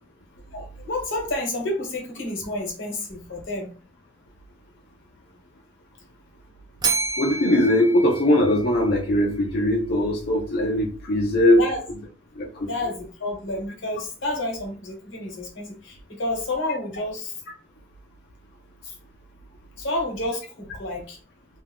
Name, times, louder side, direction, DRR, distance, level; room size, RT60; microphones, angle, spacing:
voice 1, 0.5-3.7 11.5-11.8 12.6-17.3 18.8-18.9 19.8-21.2, left 2 dB, 85° left, 1 dB, 1.0 m, -30 dB
Bell, 6.8-9.0, right 4 dB, 20° right, 0.4 m, -29 dB
voice 2, 7.2-11.6 12.4-12.7, left 1 dB, 55° left, 0 dB, 0.4 m, -20 dB
2.6 x 2.2 x 3.3 m, 0.38 s
head